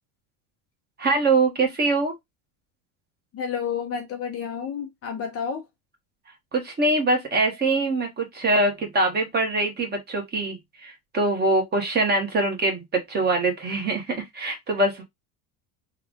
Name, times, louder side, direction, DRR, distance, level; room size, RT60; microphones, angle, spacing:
voice 1, 1.0-2.1 6.5-15.0, right 2 dB, 20° right, 1.3 m, -23 dB
voice 2, 3.3-5.6, left 7 dB, 35° left, 0.7 m, -30 dB
3.6 x 2.4 x 3.5 m
supercardioid pair, 135°, 43 cm